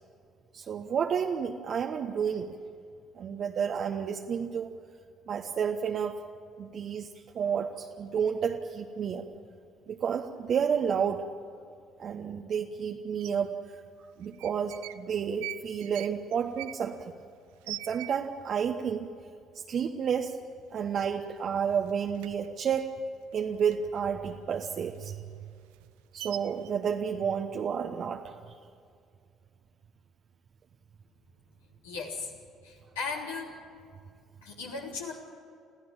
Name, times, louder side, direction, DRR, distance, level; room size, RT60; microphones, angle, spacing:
voice 1, 0.5-2.5 3.1-4.8 5.3-6.2 6.6-7.1 7.3-9.2 9.9-11.2 12.0-13.8 14.2-17.1 17.7-19.1 19.7-20.4 20.7-22.9 23.3-25.2 26.1-28.4, right 7 dB, 50° right, 2 dB, 1.1 m, -31 dB
sound 1, 13.2-13.3 14.2-15.0 15.3-18.6 18.9-19.0 19.2-19.7 20.2-20.3 20.6-21.4 21.7-24.0 24.4-26.7, right 17 dB, 70° right, 0.7 m, -43 dB
voice 2, 31.8-32.3 32.6-33.6 34.4-35.1, left 4 dB, 75° left, -1 dB, 3.6 m, -37 dB
26.5 x 16.0 x 9.0 m, 2.4 s
figure-of-eight pair, 50°, 0 cm